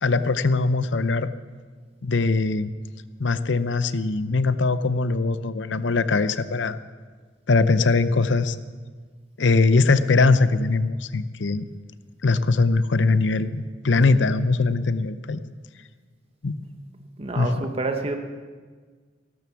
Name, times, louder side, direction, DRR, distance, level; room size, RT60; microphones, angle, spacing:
voice 1, 0.0-1.3 2.0-2.7 3.2-6.8 7.5-8.6 9.4-11.7 12.2-15.4 16.4-16.6 17.4-17.5, left 3 dB, 70° left, 13 dB, 0.7 m, -21 dB
voice 2, 17.2-18.2, right 3 dB, 30° right, 5 dB, 1.1 m, -28 dB
16.0 x 12.0 x 7.1 m, 1.5 s
head